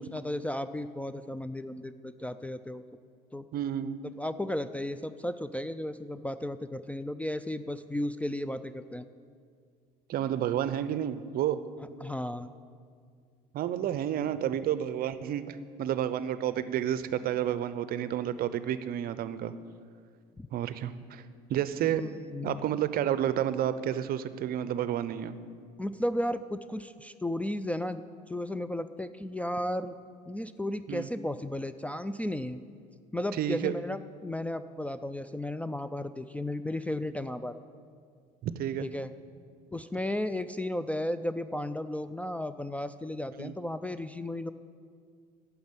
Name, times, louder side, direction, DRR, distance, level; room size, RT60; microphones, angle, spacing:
voice 1, 0.0-2.8 3.3-3.5 4.2-9.0 12.0-12.5 20.4-20.5 21.9-22.6 25.8-28.0 28.3-29.9 30.3-32.6 33.1-37.6 38.8-39.1 39.7-44.5, left 1 dB, 5° left, 9 dB, 0.4 m, -34 dB
voice 2, 3.5-4.0 10.1-11.6 13.5-19.5 20.5-21.2 21.5-22.1 22.4-25.4 30.9-31.1 33.3-33.8 38.4-38.9 43.4-43.5, right 10 dB, 50° right, 14 dB, 0.6 m, -30 dB
9.4 x 7.1 x 9.0 m, 2.1 s
hypercardioid pair, 70°, 20 cm